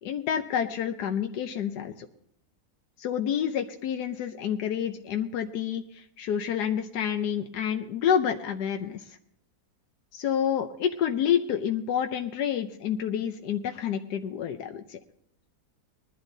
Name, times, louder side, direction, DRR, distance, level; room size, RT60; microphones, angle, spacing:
voice 1, 0.0-1.9 3.0-9.0 10.1-15.0, left 8 dB, 90° left, 6 dB, 1.4 m, -28 dB
21.0 x 12.0 x 2.7 m, 0.75 s
omnidirectional pair, 1.7 m